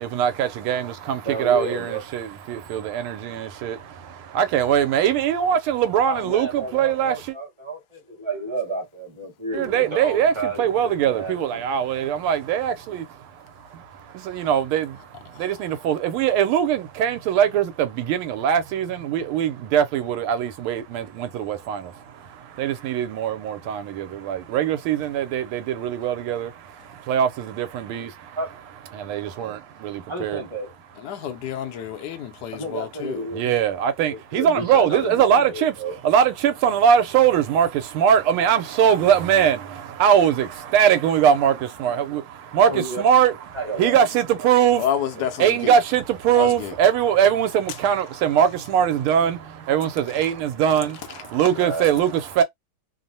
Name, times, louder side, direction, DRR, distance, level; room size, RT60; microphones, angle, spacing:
voice 1, 0.0-7.3 9.5-28.4 28.9-30.4 33.3-35.8 36.0-44.9 45.4-52.4, right 8 dB, 85° right, 1.5 m, -22 dB
voice 2, 1.2-2.0 6.1-11.6 28.4-28.5 30.1-30.7 32.5-33.4 34.1-36.0 42.6-43.0 43.5-44.0 44.4-44.5 45.2-45.3 51.5-51.9, right 2 dB, 20° right, 0.9 m, -31 dB
voice 3, 31.0-33.2 44.8-45.7 46.3-46.7, left 9 dB, 75° left, 0.9 m, -29 dB
3.4 x 2.0 x 2.6 m
omnidirectional pair, 2.3 m